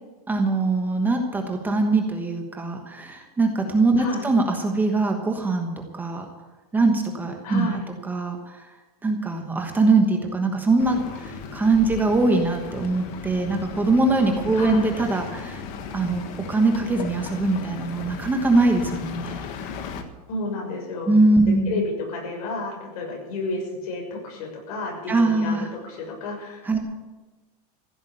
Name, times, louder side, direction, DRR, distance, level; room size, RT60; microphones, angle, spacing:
voice 1, 0.3-6.2 6.7-8.7 9.0-15.6 15.9-16.2 16.5-19.4 21.1-21.8 25.1-25.7 26.6-26.8, right 3 dB, 10° right, 4 dB, 1.2 m, -22 dB
voice 2, 4.0-4.3 7.4-7.9 14.5-14.8 20.3-21.1 21.7-26.8, left 2 dB, 70° left, 1 dB, 6.7 m, -31 dB
sound 1, 10.8-20.0, left 5 dB, 40° left, 1.5 m, -36 dB
15.5 x 8.7 x 8.6 m, 1.2 s
supercardioid pair, 175°, 20 cm